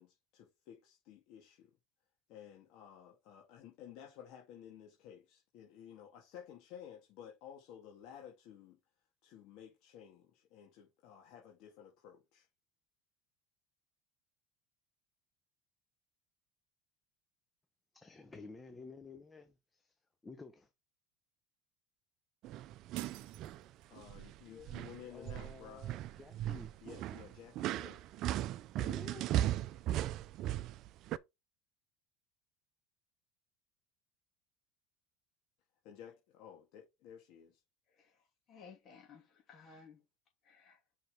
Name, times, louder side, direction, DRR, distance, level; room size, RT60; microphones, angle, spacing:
voice 1, 0.0-1.7 2.3-8.8 9.2-12.5 23.9-25.9 26.8-28.0 35.8-37.6, left 9 dB, 65° left, 2.1 m, -54 dB
voice 2, 17.9-19.9 20.2-20.7 22.9-23.1 24.5-24.8 25.1-26.7 28.7-29.3, left 3 dB, 15° left, 0.9 m, -52 dB
sound 1, 22.4-23.6 24.0-24.4 24.6-31.2, right 13 dB, 55° right, 0.5 m, -37 dB
sound 2, 23.0-24.2, right 16 dB, 75° right, 0.9 m, -52 dB
voice 3, 38.5-40.0 40.4-40.8, left 5 dB, 45° left, 2.9 m, -57 dB
5.8 x 5.1 x 3.8 m
supercardioid pair, 110°, 0 cm